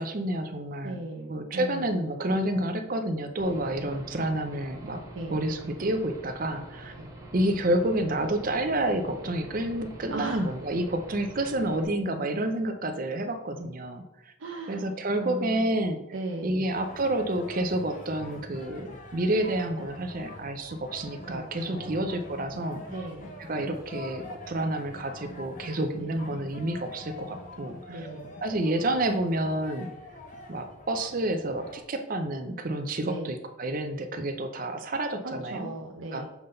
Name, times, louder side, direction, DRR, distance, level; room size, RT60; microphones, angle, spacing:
voice 1, 0.0-1.0 1.3-5.0 5.3-7.0 7.3-14.3 14.7-16.0 16.4-22.8 23.4-28.1 28.4-29.9 30.5-35.7 36.1-36.3, right 1 dB, 45° right, 7 dB, 0.6 m, -29 dB
voice 2, 0.8-1.9 5.1-5.4 7.0-7.1 10.1-10.5 14.4-15.6 16.1-16.7 21.2-22.0 22.9-23.3 26.0-26.1 27.9-28.4 33.0-33.4 35.2-36.3, right 2 dB, 80° right, -1 dB, 0.7 m, -37 dB
Aircraft / Engine, 3.4-11.8, right 1 dB, 15° right, 0.9 m, -45 dB
sound 1, 16.7-31.8, left 2 dB, 40° left, 0.8 m, -45 dB
7.0 x 3.8 x 3.9 m, 0.90 s
head